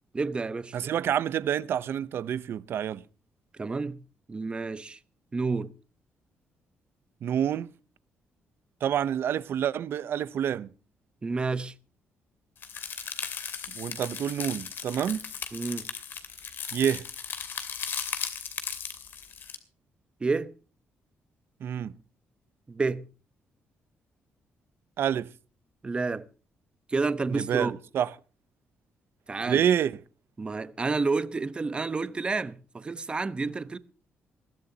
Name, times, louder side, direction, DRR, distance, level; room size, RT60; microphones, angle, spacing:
voice 1, 0.1-0.7 3.6-4.0 4.3-5.0 5.3-5.7 11.2-11.7 15.5-15.9 20.2-20.5 22.7-23.0 25.8-26.3 26.9-27.8 29.3-29.6 30.4-33.8, right 4 dB, 25° right, 0.9 m, -29 dB
voice 2, 0.7-3.0 7.2-7.7 8.8-10.7 13.7-15.3 16.7-17.0 21.6-21.9 25.0-25.3 27.3-28.1 29.5-30.0, right 9 dB, 65° right, 0.8 m, -28 dB
sound 1, 12.6-19.6, left 7 dB, 55° left, 2.6 m, -37 dB
21.5 x 15.5 x 2.9 m
cardioid pair, 130°, 4 cm